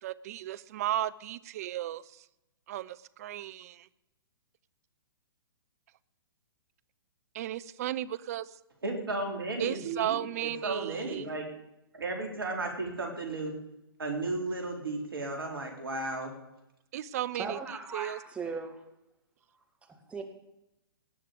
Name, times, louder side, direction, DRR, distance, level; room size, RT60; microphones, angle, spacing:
voice 1, 0.0-2.2 2.7-3.9 7.3-8.5 9.6-11.3 16.9-17.6 17.9-18.2, right 12 dB, 40° right, 0.6 m, -34 dB
voice 2, 8.8-11.5 11.9-13.5 14.0-16.3, right 2 dB, 70° right, 4.1 m, -34 dB
voice 3, 17.3-18.8 19.8-20.2, right 4 dB, 10° right, 2.0 m, -38 dB
18.5 x 6.6 x 8.7 m
figure-of-eight pair, 120°, 12 cm